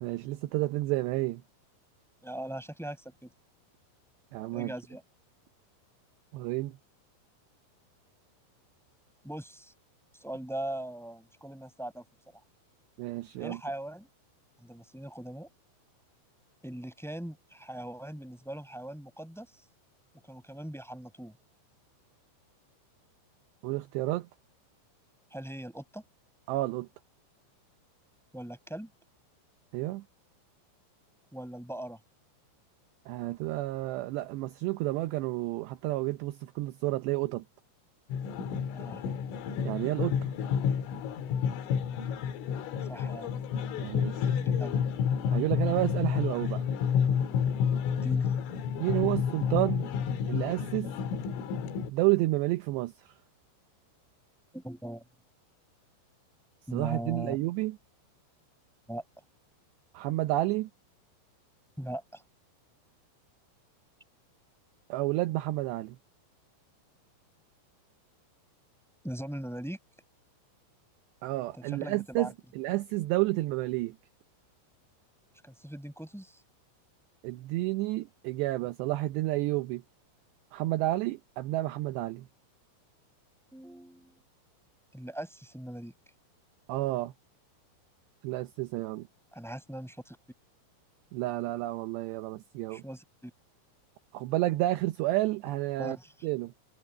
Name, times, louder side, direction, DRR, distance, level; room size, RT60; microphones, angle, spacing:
voice 1, 0.0-1.4 4.3-4.7 6.3-6.8 13.0-13.6 23.6-24.3 26.5-26.9 29.7-30.0 33.1-37.4 39.6-40.3 43.8-44.4 45.3-46.6 48.8-49.9 50.3-50.9 51.9-53.1 56.7-57.8 59.9-60.7 64.9-66.0 71.2-74.0 77.2-79.8 80.5-82.3 86.7-87.1 88.2-89.1 91.1-92.8 94.1-96.0 96.2-96.5, right 18 dB, 80° right, 2.6 m, -30 dB
voice 2, 2.2-3.3 4.5-5.0 9.2-9.7 10.1-12.0 13.4-14.1 14.6-15.5 16.6-19.5 20.2-21.3 25.3-26.0 28.3-28.9 31.3-32.0 37.2-37.4 38.7-39.0 42.9-43.4 44.4-44.8 47.9-48.3 54.5-55.0 56.7-57.4 58.9-59.0 61.8-62.2 69.0-69.8 71.5-72.3 75.4-76.4 83.5-84.2 84.9-85.9 89.3-90.2 92.7-93.3 95.8-96.1, right 1 dB, ahead, 5.1 m, -40 dB
sound 1, 38.1-51.9, left 7 dB, 85° left, 4.3 m, -30 dB
omnidirectional pair, 5.6 m